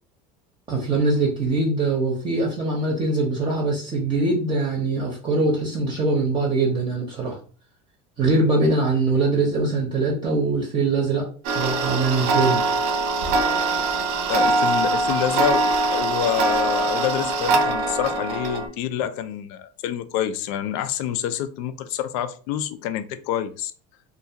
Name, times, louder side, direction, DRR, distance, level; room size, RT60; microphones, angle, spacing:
voice 1, 0.7-7.4 8.2-12.7, right 3 dB, 25° right, 0.7 m, -22 dB
Tick-tock, 11.4-18.7, right 3 dB, 80° right, 0.6 m, -22 dB
voice 2, 14.3-23.7, left 10 dB, 70° left, 0.4 m, -27 dB
2.5 x 2.4 x 2.7 m
supercardioid pair, 135°, 19 cm